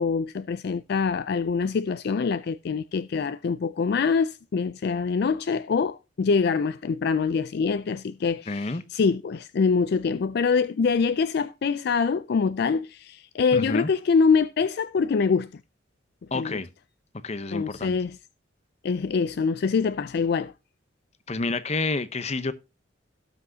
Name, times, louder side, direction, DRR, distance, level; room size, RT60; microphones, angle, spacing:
voice 1, 0.0-15.5 16.3-16.6 17.5-18.2 18.8-20.5, left 5 dB, 55° left, 0.4 m, -24 dB
voice 2, 8.5-8.8 13.5-13.9 16.3-16.7 17.2-17.9 21.3-22.5, left 3 dB, 35° left, 0.7 m, -29 dB
17.5 x 6.0 x 2.7 m
head